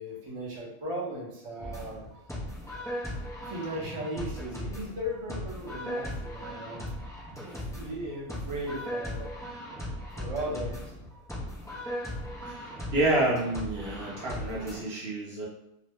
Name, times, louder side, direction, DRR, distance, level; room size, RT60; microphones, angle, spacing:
voice 1, 0.0-2.0 3.5-6.8 7.7-9.3 10.1-10.9, equal, 30° right, -4 dB, 0.7 m, -36 dB
sound 1, 1.6-14.8, left 1 dB, 5° left, 0.3 m, -38 dB
voice 2, 12.4-15.5, right 2 dB, 65° right, -5 dB, 0.9 m, -29 dB
2.8 x 2.0 x 3.5 m, 0.86 s
omnidirectional pair, 1.2 m